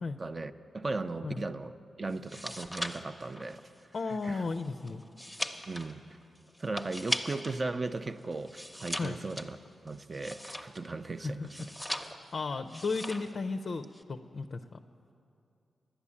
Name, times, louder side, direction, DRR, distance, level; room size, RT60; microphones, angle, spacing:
voice 1, 0.2-1.7 2.0-3.6 4.2-4.4 5.7-6.0 6.6-9.6 9.8-11.7, right 3 dB, 35° right, 9 dB, 0.4 m, -37 dB
sound 1, 2.1-7.6 7.9-11.0 11.5-12.4 12.7-13.4 13.6-14.0, equal, ahead, 0.7 m, -39 dB
voice 2, 3.9-5.0 9.0-9.2 11.2-11.7 12.3-14.8, left 4 dB, 55° left, 7 dB, 0.4 m, -35 dB
11.5 x 9.8 x 8.4 m, 2.6 s
cardioid pair, 80°, 0 cm